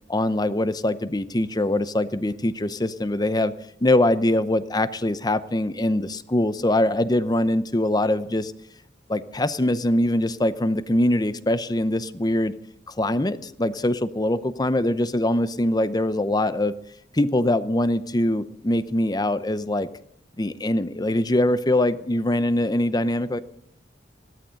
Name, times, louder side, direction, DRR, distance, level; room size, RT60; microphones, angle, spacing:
voice 1, 0.1-3.5 3.8-8.5 9.1-12.5 12.9-16.7 17.1-19.9 20.4-23.4, left 1 dB, 20° left, 14 dB, 0.7 m, -23 dB
17.0 x 12.5 x 6.4 m, 0.70 s
head